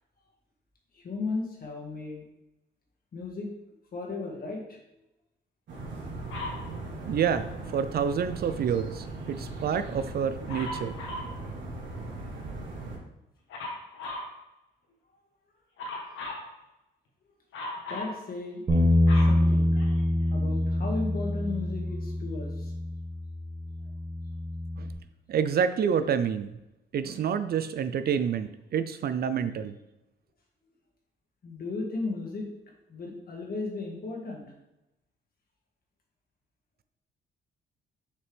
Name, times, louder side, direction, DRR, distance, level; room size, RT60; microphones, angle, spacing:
voice 1, 1.0-2.2 3.1-3.5 3.9-4.8 16.0-16.2 17.9-18.6 19.2-19.7 20.3-22.7 31.4-32.5 32.9-34.4, left 3 dB, 50° left, 0 dB, 1.8 m, -35 dB
sound 1, 5.7-13.0, right 2 dB, 70° right, 1.9 m, -39 dB
Dog, 6.3-6.7 10.5-11.3 13.5-14.3 15.8-16.5 17.5-18.2 18.7-20.2 21.0-21.1, left 2 dB, 80° left, 1.5 m, -37 dB
voice 2, 7.0-7.5 7.7-11.0 24.8-24.9 25.3-26.5 26.9-29.8, right 7 dB, 50° right, 12 dB, 0.4 m, -28 dB
Bass guitar, 18.7-24.9, left 1 dB, 35° right, 1.6 m, -26 dB
6.9 x 4.4 x 3.4 m, 0.92 s
cardioid pair, 90°, 20 cm